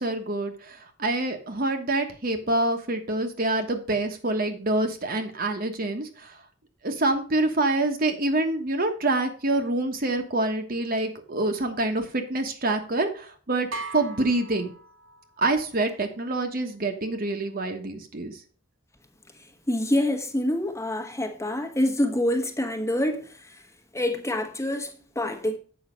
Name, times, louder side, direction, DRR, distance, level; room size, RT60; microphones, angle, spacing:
voice 1, 0.0-6.3 6.8-14.7 15.4-18.4, right 2 dB, 50° right, 1.3 m, -26 dB
sound 1, 13.7-15.5, right 3 dB, 90° right, 1.7 m, -38 dB
voice 2, 19.7-23.6 23.9-25.6, left 1 dB, 15° left, 1.2 m, -26 dB
8.1 x 5.6 x 5.2 m
head